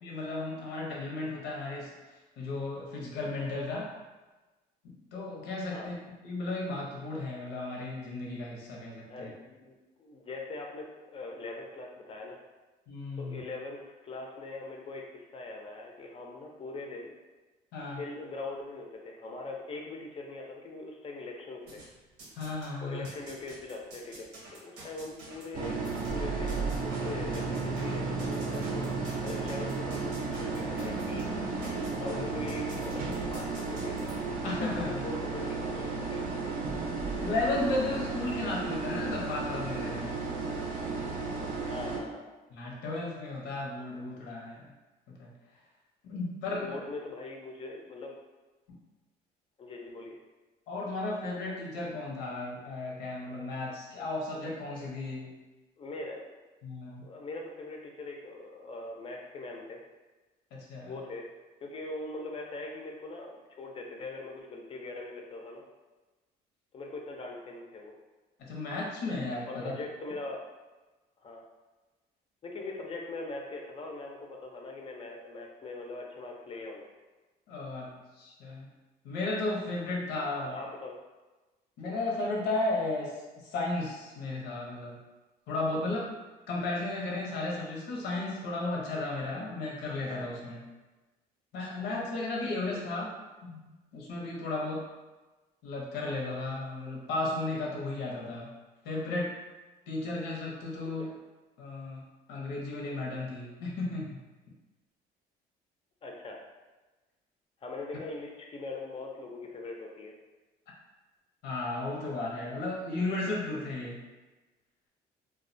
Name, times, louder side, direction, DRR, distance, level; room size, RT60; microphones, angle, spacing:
voice 1, 0.0-1.9 2.4-3.9 4.8-5.9 6.2-9.3 12.9-13.4 17.7-18.0 22.3-23.1 32.1-32.2 34.4-35.0 37.2-40.2 42.5-44.7 45.1-45.3 46.0-46.8 50.7-55.3 56.6-57.1 60.5-61.0 68.4-69.7 77.5-78.7 79.0-80.6 81.8-85.0 85.5-86.1 86.5-90.7 91.5-93.1 93.4-94.9 95.6-98.5 98.8-99.4 99.9-101.1 101.6-104.2 111.4-114.0, left 2 dB, 85° left, -2 dB, 0.7 m, -34 dB
voice 2, 9.1-12.4 13.2-17.1 17.9-21.8 22.8-24.3 24.6-25.8 26.1-31.4 32.0-33.9 34.4-36.2 41.6-42.3 46.5-48.1 49.6-50.1 55.8-56.3 57.0-59.8 60.9-61.3 61.6-65.6 66.7-67.9 69.5-70.4 71.2-71.4 72.4-76.9 80.3-81.0 92.7-93.1 100.8-100.9 106.0-106.4 107.6-110.1, left 2 dB, 35° left, 0 dB, 0.4 m, -41 dB
sound 1, 21.7-22.7 23.0-34.1, right 2 dB, 90° right, 0.7 m, -49 dB
sound 2, 25.5-42.0, right 3 dB, 55° right, 0.5 m, -33 dB
2.3 x 2.1 x 2.5 m, 1.2 s
cardioid pair, 110°, 17 cm